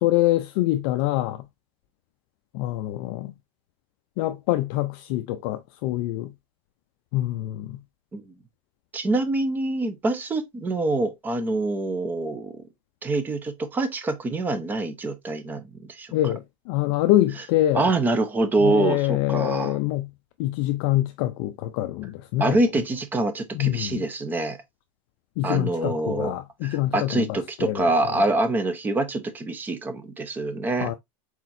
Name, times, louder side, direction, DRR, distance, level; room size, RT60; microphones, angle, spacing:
voice 1, 0.0-1.5 2.5-3.3 4.2-6.3 7.1-7.8 16.1-17.9 18.6-20.1 20.4-22.6 23.5-24.1 25.4-27.9 28.1-28.2 30.8-30.9, left 15 dB, 45° left, 0.4 m, -25 dB
voice 2, 8.9-12.6 13.0-16.1 17.7-19.8 22.4-24.6 25.4-26.3 26.6-30.9, right 2 dB, 10° right, 0.6 m, -25 dB
4.4 x 4.2 x 2.5 m
supercardioid pair, 170°, 16 cm